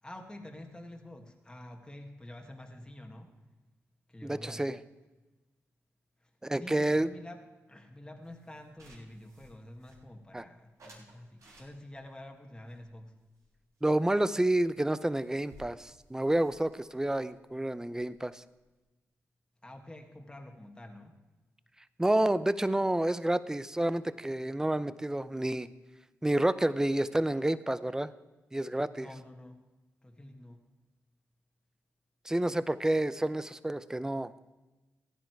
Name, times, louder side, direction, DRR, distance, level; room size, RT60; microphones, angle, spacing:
voice 1, 0.0-3.3 4.1-4.6 6.2-6.3 6.6-7.4 7.7-13.1 19.6-21.1 29.0-29.6 30.0-30.6, left 1 dB, 15° left, 2 dB, 1.7 m, -48 dB
voice 2, 4.2-4.8 6.4-7.1 10.3-10.5 13.8-18.4 22.0-25.7 26.2-28.1 28.5-29.1 32.3-34.3, right 1 dB, 10° right, 15 dB, 0.6 m, -29 dB
sound 1, 8.2-10.3 10.8-12.1 12.7-13.9 14.2-14.3 14.6-14.7 14.9-18.8, equal, 75° right, 4.4 m, -59 dB
15.5 x 10.5 x 4.6 m, 1.1 s
cardioid pair, 70°, 6 cm